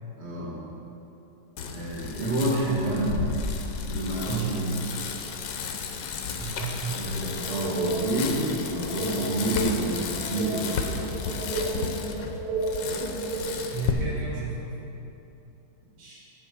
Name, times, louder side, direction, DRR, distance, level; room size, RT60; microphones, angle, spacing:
voice 1, 0.2-0.6 1.7-3.1 3.9-4.9 6.9-11.1 16.0-16.1, right 2 dB, 35° right, -7 dB, 1.6 m, -29 dB
Bicycle, 1.6-13.9, left 5 dB, 70° left, 1.3 m, -33 dB
voice 2, 4.3-4.6 6.4-7.3 13.7-14.7, right 4 dB, 55° right, -8 dB, 3.2 m, -32 dB
sound 1, 7.0-13.4, right 3 dB, 80° right, 2.4 m, -33 dB
11.5 x 4.4 x 6.4 m, 2.8 s
omnidirectional pair, 2.3 m